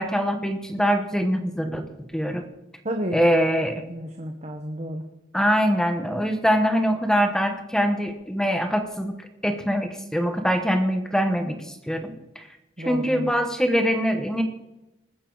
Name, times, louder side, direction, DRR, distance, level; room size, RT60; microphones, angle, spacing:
voice 1, 0.0-1.8 2.1-2.4 3.1-3.7 5.3-9.1 9.4-12.4 12.8-14.4, equal, 5° left, 6 dB, 0.9 m, -23 dB
voice 2, 2.8-3.4 3.9-5.0 12.8-13.3, right 1 dB, 35° right, 3 dB, 1.0 m, -31 dB
20.5 x 9.8 x 3.9 m, 0.96 s
head